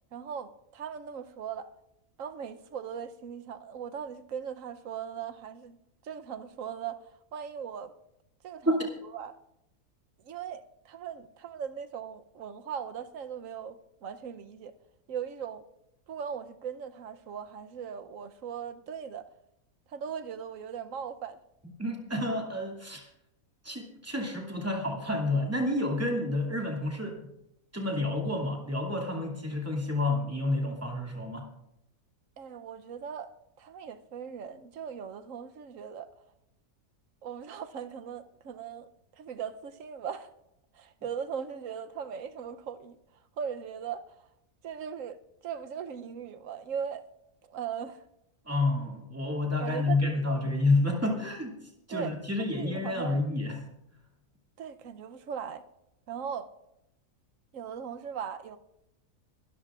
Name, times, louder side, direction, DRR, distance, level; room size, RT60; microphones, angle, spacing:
voice 1, 0.1-1.7 2.2-5.8 6.0-7.0 7.3-7.9 8.4-9.4 10.2-14.7 15.1-15.6 16.1-19.2 19.9-21.4 32.4-36.1 37.2-38.9 39.2-40.3 40.7-43.0 43.4-44.3 44.6-47.0 47.4-48.0 49.6-50.3 51.9-53.2 54.6-55.6 56.1-56.5 57.5-58.6, right 7 dB, 70° right, 1.2 m, -39 dB
voice 2, 21.8-23.1 23.6-27.2 27.7-31.5 48.5-51.5 51.9-53.6, left 2 dB, 10° right, 2.5 m, -29 dB
23.5 x 13.5 x 2.5 m
omnidirectional pair, 1.5 m